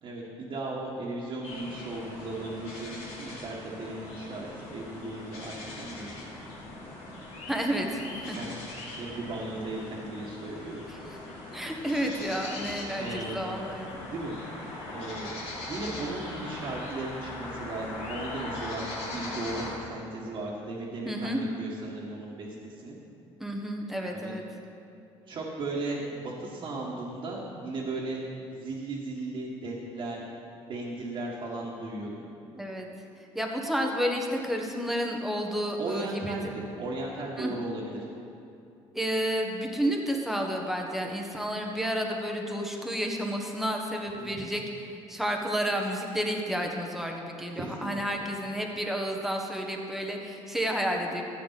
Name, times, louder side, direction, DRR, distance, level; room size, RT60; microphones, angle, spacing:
voice 1, 0.0-6.2 8.3-8.6 8.9-10.8 12.9-13.4 14.0-14.3 14.8-15.4 15.7-23.0 24.1-24.3 25.3-28.2 28.5-30.2 30.7-32.2 35.8-38.0 44.2-44.5 47.6-48.2, right 2 dB, 50° right, -5 dB, 1.9 m, -36 dB
sound 1, 1.4-19.8, left 2 dB, 85° left, 3.1 m, -40 dB
voice 2, 7.5-8.4 10.9-11.2 11.5-13.9 21.0-21.4 23.4-24.4 32.5-32.9 33.3-36.4 37.4-37.5 38.9-51.2, equal, ahead, 1 dB, 1.5 m, -31 dB
14.5 x 8.4 x 4.2 m, 2.6 s
cardioid pair, 100°, 11 cm